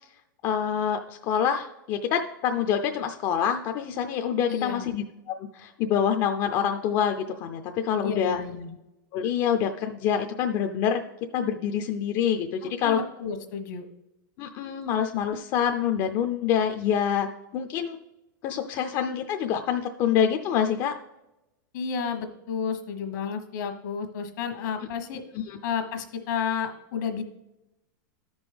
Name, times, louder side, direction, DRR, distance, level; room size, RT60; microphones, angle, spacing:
voice 1, 0.4-5.0 5.5-8.4 9.1-11.0 11.3-13.0 14.4-17.3 17.5-18.0 18.4-20.9 25.5-25.6, left 8 dB, 45° left, 6 dB, 0.5 m, -26 dB
voice 2, 4.5-4.9 8.0-8.8 12.8-13.8 21.7-25.2 25.6-27.2, left 6 dB, 65° left, 7 dB, 1.2 m, -31 dB
12.5 x 5.2 x 3.4 m, 0.94 s
hypercardioid pair, 115°, 10 cm